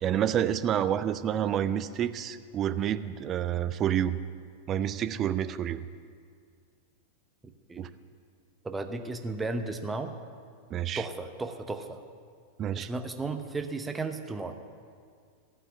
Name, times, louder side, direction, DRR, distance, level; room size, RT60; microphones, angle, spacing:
voice 1, 0.0-4.2 4.7-5.8 7.8-7.9 10.7-11.0 12.6-12.9, right 10 dB, 30° right, 13 dB, 0.4 m, -28 dB
voice 2, 8.6-10.1 11.0-12.0 12.7-14.5, right 3 dB, 10° right, 6 dB, 0.8 m, -34 dB
14.5 x 5.7 x 9.6 m, 2.1 s
figure-of-eight pair, 90°, 0 cm